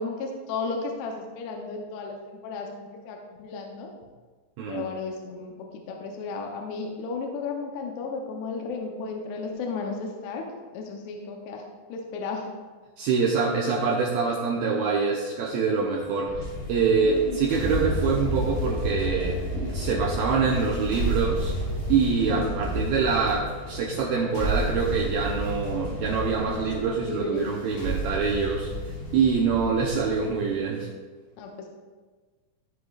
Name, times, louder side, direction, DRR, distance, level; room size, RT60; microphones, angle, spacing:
voice 1, 0.0-3.9 4.7-10.5 10.7-11.6 11.9-12.5 17.0-17.4 22.2-22.6 26.4-27.6 31.4-31.7, left 4 dB, 80° left, 1 dB, 2.8 m, -34 dB
voice 2, 4.6-4.9 13.0-16.3 16.7-21.5 21.9-28.7 29.1-30.9, right 5 dB, 85° right, -2 dB, 2.1 m, -25 dB
sound 1, 16.3-30.6, equal, 55° left, 3.8 m, -31 dB
14.5 x 4.9 x 2.4 m, 1.4 s
omnidirectional pair, 5.0 m